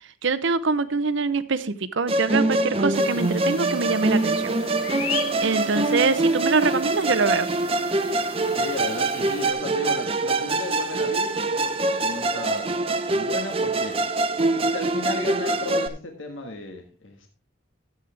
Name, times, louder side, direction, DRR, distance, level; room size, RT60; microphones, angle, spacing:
voice 1, 0.2-4.5 5.4-7.5, right 4 dB, 65° right, 14 dB, 0.7 m, -24 dB
Musical instrument, 2.1-15.9, right 2 dB, 25° right, 0.7 m, -24 dB
sound 1, 2.9-9.5, left 8 dB, 90° left, 1.0 m, -38 dB
voice 2, 8.6-12.7 13.1-14.0 14.5-17.3, left 2 dB, 65° left, 3 dB, 1.6 m, -34 dB
13.0 x 8.4 x 3.4 m, 0.35 s
head